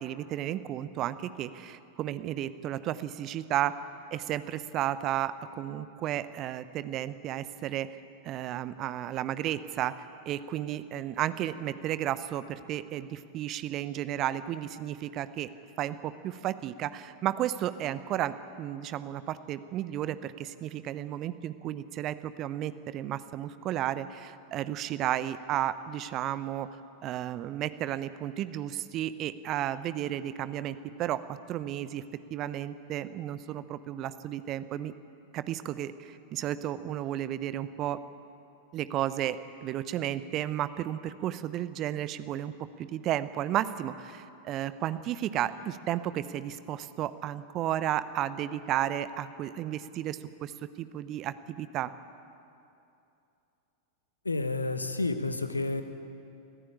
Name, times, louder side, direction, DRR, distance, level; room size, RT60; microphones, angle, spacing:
voice 1, 0.0-3.7 4.1-7.9 8.2-10.0 10.3-15.5 15.8-26.7 27.0-32.0 32.3-34.9 35.3-38.0 38.7-42.5 42.8-50.5 50.8-51.9, right 12 dB, 35° right, 14 dB, 0.9 m, -33 dB
voice 2, 54.2-55.8, left 2 dB, 80° left, 9 dB, 1.3 m, -30 dB
24.5 x 15.0 x 8.7 m, 2.7 s
figure-of-eight pair, 90°, 0 cm